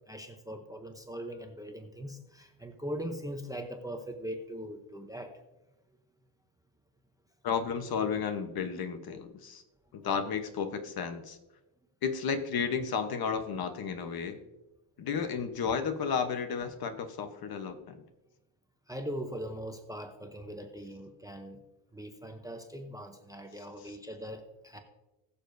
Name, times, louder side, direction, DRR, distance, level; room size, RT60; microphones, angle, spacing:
voice 1, 0.1-5.4 11.1-11.2 18.9-21.6 21.9-24.8, equal, 5° right, 5 dB, 0.7 m, -41 dB
voice 2, 7.4-9.6 9.9-11.4 12.0-14.4 15.0-18.0, left 6 dB, 50° left, 8 dB, 1.0 m, -33 dB
20.5 x 6.9 x 2.6 m, 1.0 s
cardioid pair, 145°, 48 cm